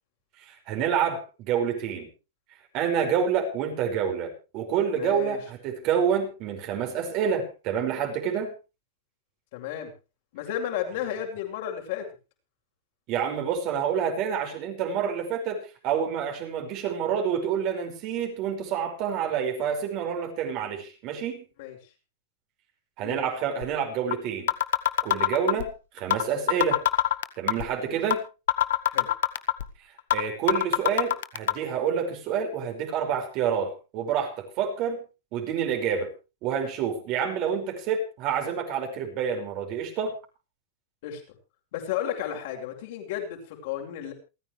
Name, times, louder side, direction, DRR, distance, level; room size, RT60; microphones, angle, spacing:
voice 1, 0.4-2.1 2.7-8.5 13.1-21.4 23.0-24.5 25.0-26.8 27.4-28.2 30.1-35.0 35.3-36.1 36.4-40.1, right 7 dB, 45° right, 3 dB, 5.5 m, -28 dB
voice 2, 4.9-5.4 9.5-9.9 10.3-12.1 21.6-21.8 23.0-23.2 25.4-25.6 27.9-28.0 28.9-29.1 41.0-41.2 41.7-44.1, left 10 dB, 65° left, 2 dB, 6.5 m, -33 dB
sound 1, 23.6-23.7 24.1-24.2 24.5-25.7 26.1-26.2 26.5-27.7 28.1-28.2 28.5-29.7 30.1-30.2 30.5-31.5, left 12 dB, 80° left, 1.3 m, -22 dB
28.5 x 9.8 x 3.3 m, 0.31 s
hypercardioid pair, 125°, 0 cm